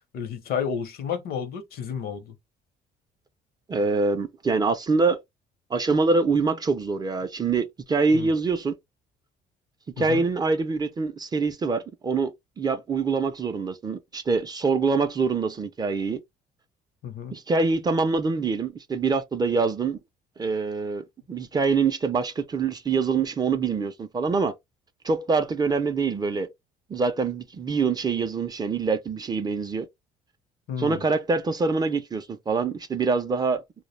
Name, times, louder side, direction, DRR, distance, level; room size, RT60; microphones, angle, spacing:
voice 1, 0.1-2.3 8.1-8.3 10.0-10.2 17.0-17.3 30.7-31.0, left 7 dB, 65° left, 0.7 m, -31 dB
voice 2, 3.7-5.2 5.7-8.8 10.0-16.2 17.3-20.0 20.4-24.5 25.0-26.5 26.9-29.9 30.8-33.6, right 4 dB, 25° right, 0.4 m, -25 dB
2.2 x 2.1 x 3.0 m
cardioid pair, 110°, 17 cm